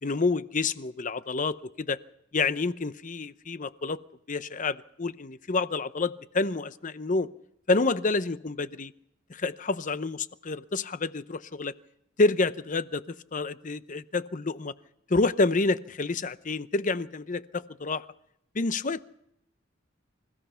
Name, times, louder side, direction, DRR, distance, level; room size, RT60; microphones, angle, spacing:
voice 1, 0.0-2.0 2.3-4.0 4.3-7.3 7.7-8.9 9.4-11.7 12.2-14.7 15.1-18.1 18.5-19.1, left 3 dB, 40° left, 14 dB, 0.7 m, -28 dB
28.5 x 16.0 x 5.7 m, 0.75 s
head